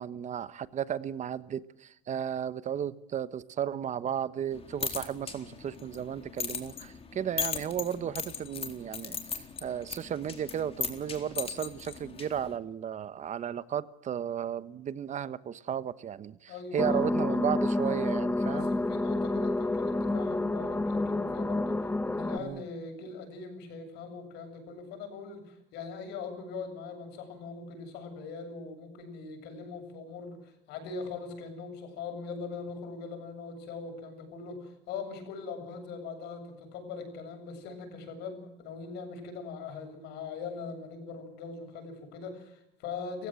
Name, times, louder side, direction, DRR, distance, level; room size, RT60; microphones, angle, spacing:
voice 1, 0.0-9.2 9.6-18.7 22.4-22.6, right 9 dB, 45° right, 1.2 m, -34 dB
sound 1, 4.5-12.6, left 5 dB, 35° left, 4.0 m, -38 dB
voice 2, 16.5-17.4 18.5-43.3, left 4 dB, 75° left, 7.7 m, -41 dB
sound 2, 16.8-22.4, left 2 dB, 10° left, 1.4 m, -29 dB
30.0 x 15.5 x 7.8 m
cardioid pair, 105°, 17 cm